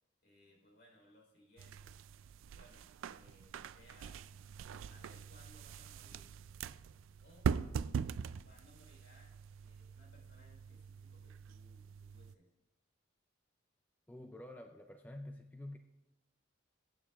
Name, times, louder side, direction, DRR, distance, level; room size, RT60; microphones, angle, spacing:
voice 1, 0.2-1.9 2.5-2.9 3.1-4.2 4.8-6.3 7.2-7.5 8.4-12.5, left 1 dB, 55° left, -1 dB, 3.7 m, -65 dB
sound 1, 1.6-12.3, right 6 dB, 85° right, 0.3 m, -42 dB
voice 2, 14.1-15.8, left 1 dB, 10° left, 5 dB, 0.3 m, -48 dB
21.5 x 8.8 x 2.4 m, 0.94 s
head